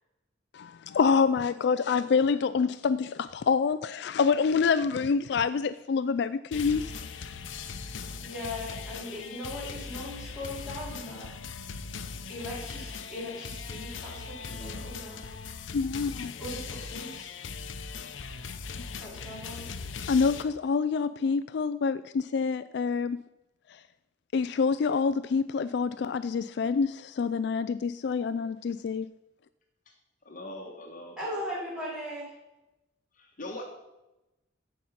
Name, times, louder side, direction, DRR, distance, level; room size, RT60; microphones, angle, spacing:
voice 1, 0.5-6.8 15.7-16.3 20.1-23.2 23.7-23.8 24.3-29.1, left 5 dB, 60° left, 13 dB, 0.3 m, -26 dB
sound 1, 6.5-20.4, left 5 dB, 90° left, 0.7 m, -39 dB
voice 2, 8.2-11.3 12.3-15.2 16.4-17.3 19.0-19.7 31.2-32.3, left 1 dB, 5° right, -7 dB, 4.2 m, -39 dB
voice 3, 30.2-31.7 33.1-33.6, left 1 dB, 45° left, 1 dB, 1.4 m, -42 dB
13.5 x 5.4 x 5.8 m, 0.97 s
head